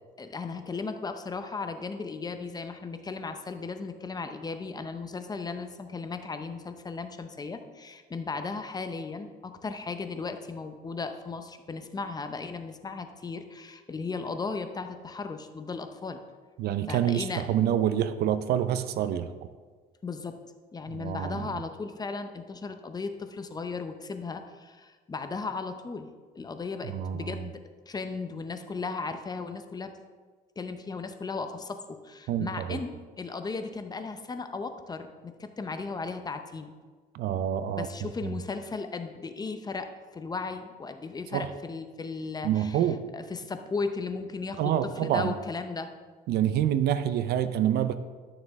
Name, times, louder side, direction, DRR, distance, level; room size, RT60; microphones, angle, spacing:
voice 1, 0.2-16.2 16.9-17.5 20.0-20.4 20.7-26.1 26.4-27.6 27.9-29.9 30.6-36.7 37.7-42.8 43.1-45.9, left 4 dB, 25° left, 8 dB, 0.7 m, -36 dB
voice 2, 16.6-19.3 20.9-21.6 26.8-27.4 32.3-32.8 37.1-38.1 41.3-41.5 42.4-43.0 44.6-45.3 46.3-47.9, right 10 dB, 70° right, 12 dB, 0.6 m, -27 dB
11.0 x 6.7 x 3.5 m, 1.5 s
cardioid pair, 110°, 17 cm